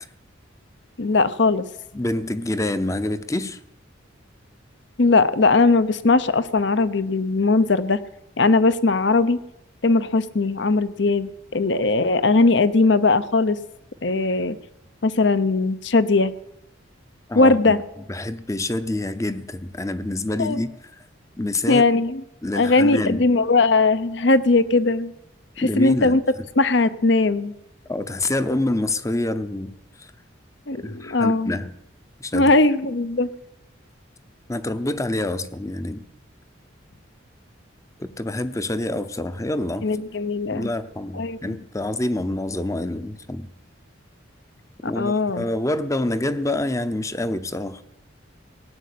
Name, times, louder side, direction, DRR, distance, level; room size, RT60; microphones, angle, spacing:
voice 1, 1.0-1.7 5.0-8.0 8.4-9.4 9.8-13.6 14.0-14.6 15.0-16.3 17.3-17.8 20.4-20.6 21.7-22.2 22.6-25.1 25.6-26.2 26.6-27.5 30.7-31.5 32.3-33.3 39.8-40.7 41.1-41.6 44.8-45.4, left 3 dB, 60° left, 14 dB, 0.8 m, -19 dB
voice 2, 1.9-3.6 17.3-17.7 18.1-20.7 21.4-21.8 22.4-23.2 25.6-26.2 27.9-29.7 30.0-30.1 30.8-31.7 32.2-32.5 34.5-36.0 38.0-39.9 40.5-43.5 44.9-47.8, left 1 dB, 15° left, 12 dB, 0.7 m, -26 dB
17.0 x 9.4 x 8.4 m, 0.86 s
head